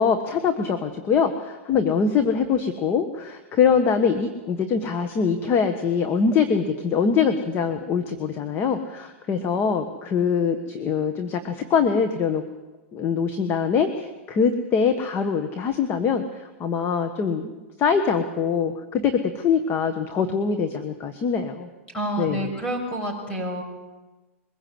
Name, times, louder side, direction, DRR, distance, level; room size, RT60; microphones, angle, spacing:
voice 1, 0.0-12.4 12.9-17.5 17.8-21.7 22.2-22.5, left 6 dB, 30° left, 8 dB, 1.4 m, -23 dB
voice 2, 21.9-23.6, right 1 dB, 15° left, 2 dB, 6.4 m, -28 dB
22.5 x 16.0 x 7.9 m, 1.2 s
hypercardioid pair, 120°, 7 cm